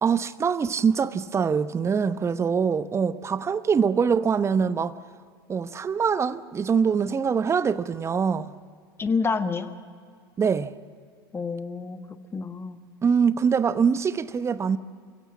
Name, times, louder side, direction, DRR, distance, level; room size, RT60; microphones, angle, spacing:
voice 1, 0.0-4.9 5.5-8.5 10.4-10.7 13.0-14.8, right 6 dB, 20° right, 0.9 m, -23 dB
voice 2, 9.0-9.7 11.3-12.8, left 4 dB, 20° left, 1.5 m, -28 dB
28.5 x 16.5 x 8.6 m
figure-of-eight pair, 80°, 12 cm